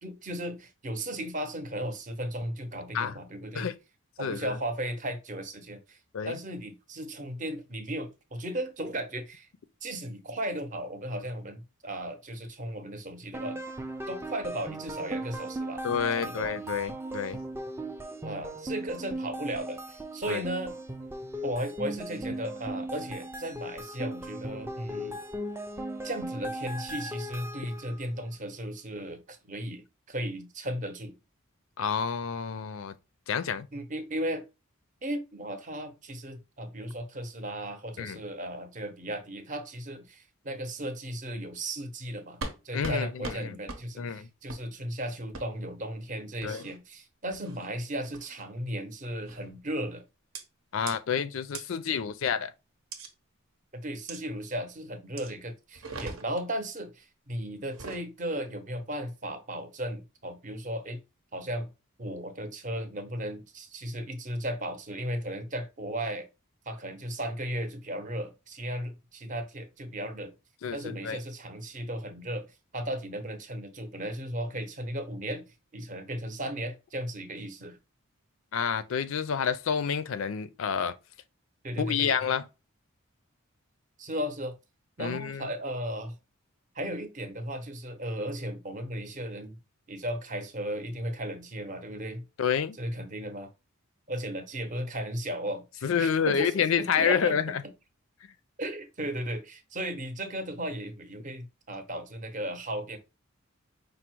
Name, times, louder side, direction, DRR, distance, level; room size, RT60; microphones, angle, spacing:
voice 1, 0.0-3.7 4.2-6.0 6.2-9.5 9.8-13.6 14.1-15.8 16.1-16.5 18.2-20.8 21.4-25.2 26.0-31.1 33.7-34.4 35.0-50.0 53.7-61.0 61.3-61.7 62.0-66.3 66.7-70.3 70.7-72.5 72.7-75.4 75.7-77.8 81.6-82.1 84.0-84.5 85.0-86.2 86.8-89.6 89.9-92.2 92.8-93.5 94.1-97.6 98.6-103.0, right 1 dB, 35° right, 0.7 m, -35 dB
voice 2, 4.2-4.5 6.1-6.4 15.8-17.4 20.3-20.4 31.8-32.9 33.3-33.7 38.0-38.2 42.7-43.6 44.0-44.3 46.4-46.6 50.7-52.5 70.6-71.2 78.5-80.9 81.8-82.5 85.0-85.5 92.4-92.8 95.8-97.6, left 7 dB, 75° left, 0.4 m, -29 dB
sound 1, 13.3-28.0, right 1 dB, 10° right, 0.3 m, -38 dB
sound 2, 42.4-42.6 42.8-43.0 43.2-43.4 43.7-43.8 44.5-44.6 45.3-45.4 46.4-46.8 47.3-47.7 48.1-48.4 49.3-49.5 50.3-50.4 50.9-51.0 51.5-51.6 52.9-53.1 54.1-54.2 55.2-55.3 55.7-56.5 57.6-58.0, right 3 dB, 85° right, 0.9 m, -39 dB
5.0 x 2.0 x 4.4 m
head